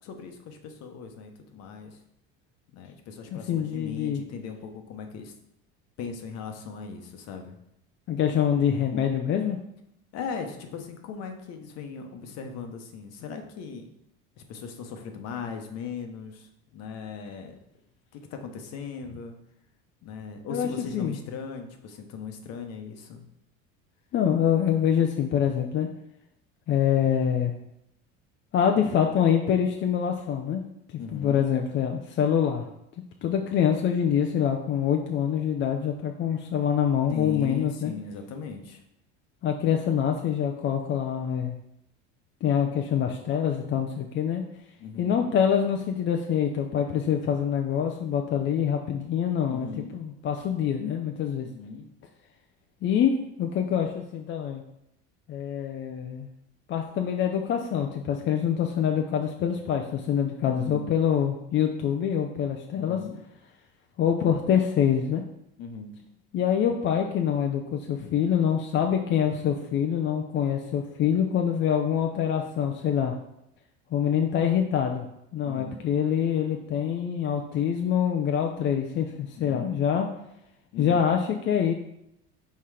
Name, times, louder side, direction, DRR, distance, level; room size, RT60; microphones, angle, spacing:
voice 1, 0.0-2.0 2.7-5.3 6.0-7.6 10.1-13.9 14.4-17.5 18.1-19.4 20.0-23.3 31.0-31.4 37.1-38.8 44.8-45.2 49.5-50.0 51.4-51.9 60.4-60.9 62.7-63.2 65.6-65.9 75.4-75.9 79.4-79.8 80.7-81.0, left 6 dB, 60° left, 5 dB, 1.1 m, -38 dB
voice 2, 3.3-4.2 8.1-9.6 20.5-20.7 20.9-21.2 24.1-25.9 26.7-27.5 28.5-30.6 30.9-32.7 33.2-37.9 39.4-41.5 42.4-44.4 45.0-49.7 49.9-51.5 52.8-54.6 55.3-56.3 56.7-63.0 64.0-65.2 66.3-73.1 73.9-75.0 75.3-80.1 80.8-81.7, left 8 dB, 40° left, 3 dB, 0.6 m, -25 dB
5.8 x 4.2 x 4.9 m, 0.81 s
cardioid pair, 125°, 29 cm